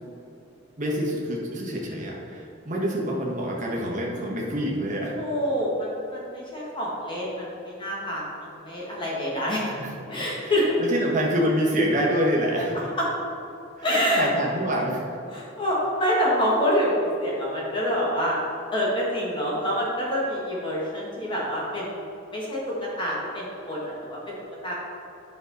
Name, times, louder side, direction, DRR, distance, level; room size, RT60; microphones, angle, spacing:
voice 1, 0.8-5.2 9.6-10.5 10.8-12.8 13.9-15.0, equal, 40° right, -2 dB, 1.5 m, -26 dB
voice 2, 5.2-9.6 10.1-10.7 13.0-13.1 13.8-14.2 15.3-18.4 18.7-22.0 22.3-24.3 24.6-24.7, equal, 25° left, -5 dB, 1.6 m, -26 dB
9.2 x 5.9 x 4.0 m, 2.7 s
head